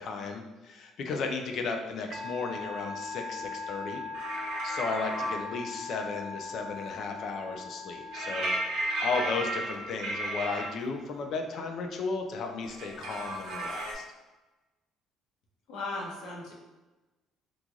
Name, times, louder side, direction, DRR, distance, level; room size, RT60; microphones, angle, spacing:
voice 1, 0.0-4.0 4.6-8.5 8.7-14.0, left 4 dB, 55° left, 4 dB, 0.4 m, -34 dB
Musical instrument, 2.1-9.7, left 4 dB, 35° right, 0.5 m, -40 dB
sound 1, 4.1-5.4 8.1-10.7 12.6-13.9, right 1 dB, 75° right, 0.9 m, -33 dB
voice 2, 15.7-16.5, left 2 dB, 75° left, -2 dB, 0.9 m, -37 dB
3.1 x 2.4 x 3.7 m, 1.1 s
cardioid pair, 120°, 0 cm